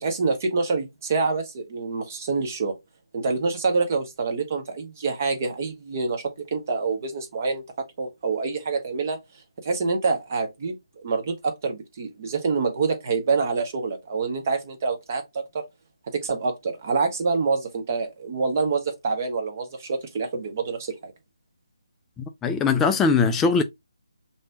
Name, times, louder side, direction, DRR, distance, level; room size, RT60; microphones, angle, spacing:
voice 1, 0.0-2.7 3.1-6.2 6.5-7.6 8.0-9.2 9.6-15.4 16.1-21.1, right 4 dB, 30° right, 0.9 m, -26 dB
voice 2, 22.4-23.6, left 5 dB, 10° left, 0.3 m, -20 dB
5.2 x 2.7 x 2.2 m
figure-of-eight pair, 150°, 3 cm